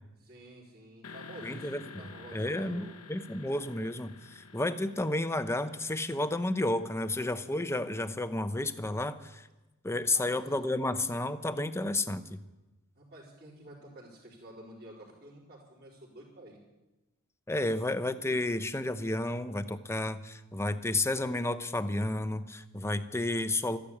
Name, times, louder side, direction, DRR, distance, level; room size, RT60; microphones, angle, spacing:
voice 1, 0.2-2.9 9.9-10.5 13.0-16.6, right 1 dB, 50° right, -9 dB, 4.1 m, -50 dB
sound 1, 1.0-8.8, left 4 dB, 90° left, 1.2 m, -51 dB
voice 2, 1.4-9.5 9.8-12.4 17.5-23.8, left 2 dB, 10° left, 11 dB, 0.7 m, -31 dB
13.5 x 12.0 x 8.6 m, 1.0 s
head